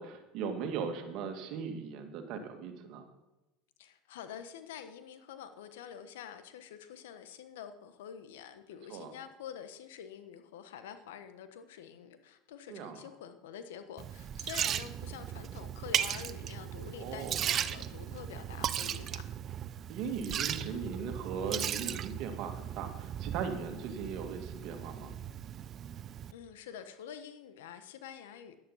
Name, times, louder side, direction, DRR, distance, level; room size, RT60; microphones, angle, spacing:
voice 1, 0.0-3.0 8.9-9.1 12.7-13.0 17.0-17.4 19.9-25.1, right 6 dB, 60° right, 6 dB, 2.1 m, -38 dB
voice 2, 3.8-19.2 26.3-28.6, left 8 dB, 85° left, 10 dB, 1.2 m, -47 dB
Liquid, 14.0-26.3, right 10 dB, 40° right, 0.6 m, -37 dB
11.0 x 10.0 x 5.7 m, 0.99 s
supercardioid pair, 100°, 0 cm